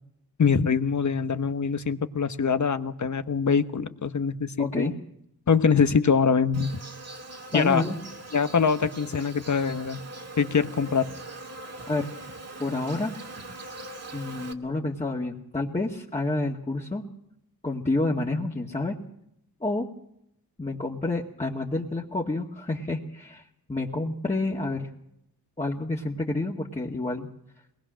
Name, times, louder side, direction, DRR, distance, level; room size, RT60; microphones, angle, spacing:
voice 1, 0.4-4.9 5.5-6.8 7.5-7.8 8.3-10.0 10.4-11.1, left 6 dB, 50° left, 10 dB, 1.2 m, -24 dB
voice 2, 4.6-4.9 7.5-8.0 11.9-12.1 12.6-13.2 14.1-17.1 17.6-19.0 19.6-19.9 20.6-23.4 23.7-24.9 25.6-27.3, left 2 dB, 20° left, -2 dB, 2.0 m, -29 dB
Insect, 6.5-14.5, right 2 dB, 40° right, 2.1 m, -42 dB
21.5 x 19.5 x 6.4 m, 0.78 s
wide cardioid pair, 85°, 37 cm